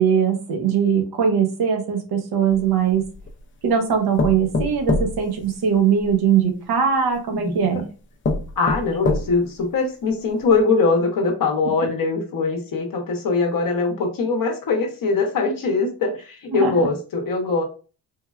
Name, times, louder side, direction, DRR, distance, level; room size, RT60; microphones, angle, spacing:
voice 1, 0.0-3.1 3.6-7.8 16.5-16.9, right 7 dB, 65° right, 3 dB, 0.8 m, -20 dB
sound 1, 2.5-3.4 4.2-6.1 7.1-7.2 7.8-7.9 8.2-9.6 10.1-10.2 10.5-10.6, left 3 dB, 30° left, 0.4 m, -25 dB
voice 2, 8.6-17.6, left 4 dB, 55° left, 2 dB, 0.8 m, -22 dB
3.3 x 2.2 x 2.3 m, 0.36 s
cardioid pair, 110°, 40 cm